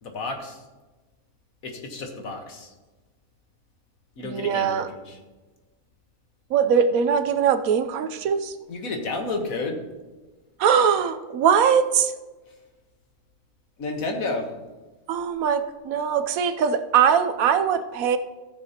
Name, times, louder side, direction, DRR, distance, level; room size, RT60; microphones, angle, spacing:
voice 1, 0.0-0.6 1.6-2.7 4.2-5.2 8.7-9.8 12.5-12.6 13.8-14.5, left 3 dB, 65° left, 3 dB, 1.7 m, -31 dB
voice 2, 4.2-4.9 6.5-8.5 10.6-12.1 15.1-18.2, right 7 dB, 75° right, 10 dB, 1.0 m, -21 dB
16.0 x 6.7 x 2.9 m, 1.2 s
omnidirectional pair, 1.6 m